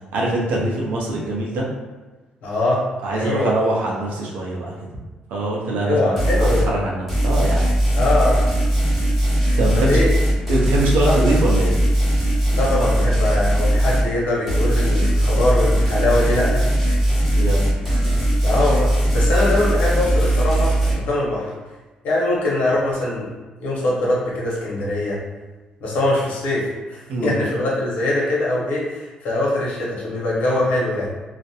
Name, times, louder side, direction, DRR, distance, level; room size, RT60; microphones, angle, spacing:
voice 1, 0.1-1.7 3.0-4.7 5.3-7.7 9.6-10.0 10.5-11.7 17.3-17.7 27.1-27.4, right 2 dB, 85° right, -3 dB, 0.6 m, -23 dB
voice 2, 2.4-2.8 3.1-3.5 5.8-6.7 7.9-8.5 9.7-10.1 11.0-11.2 12.5-16.7 18.4-21.5 22.0-23.3 23.6-25.2 25.8-31.1, left 2 dB, 70° left, -5 dB, 0.9 m, -22 dB
sound 1, 6.2-6.7 7.1-14.1 14.5-20.9, right 1 dB, ahead, 0.9 m, -19 dB
2.4 x 2.1 x 2.8 m, 1.3 s
cardioid pair, 135°, 3 cm